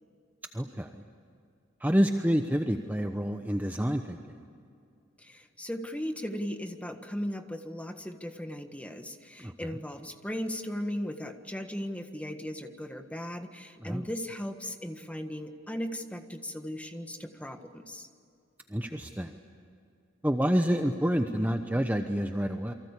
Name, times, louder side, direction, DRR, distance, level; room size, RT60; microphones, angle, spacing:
voice 1, 0.5-0.9 1.8-4.2 9.4-9.5 13.8-14.0 18.7-19.3 20.2-22.7, equal, 10° right, 5 dB, 0.9 m, -28 dB
voice 2, 5.2-18.1 21.3-21.4, equal, 5° left, 6 dB, 1.5 m, -37 dB
29.0 x 24.0 x 8.3 m, 2.5 s
head